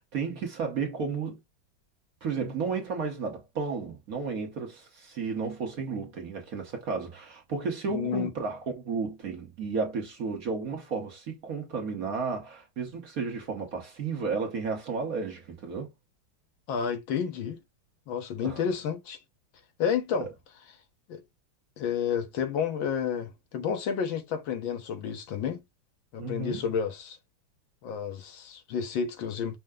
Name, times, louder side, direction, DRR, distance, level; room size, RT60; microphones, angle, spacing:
voice 1, 0.0-1.4 2.2-15.9 18.4-18.6 26.2-26.6, right 5 dB, 50° right, 1.3 m, -33 dB
voice 2, 7.9-8.3 16.7-17.6 18.1-19.2 19.8-20.3 21.1-21.2 21.8-25.6 26.1-27.2 27.8-29.6, left 7 dB, 75° left, 1.7 m, -30 dB
5.5 x 2.1 x 3.6 m
omnidirectional pair, 2.2 m